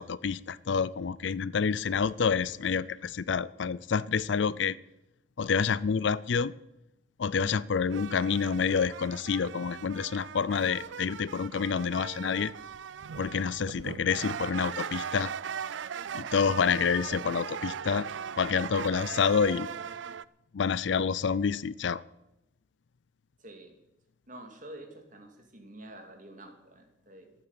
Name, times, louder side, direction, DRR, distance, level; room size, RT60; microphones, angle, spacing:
voice 1, 0.0-4.8 5.4-6.5 7.2-12.5 13.2-15.3 16.1-18.1 18.4-19.7 20.5-22.0, left 6 dB, 65° left, 20 dB, 0.4 m, -28 dB
sound 1, 7.9-20.2, right 7 dB, 70° right, 0.4 m, -39 dB
voice 2, 23.4-23.7 24.3-27.3, right 1 dB, 40° right, 4 dB, 2.5 m, -48 dB
13.5 x 8.7 x 8.4 m, 0.89 s
head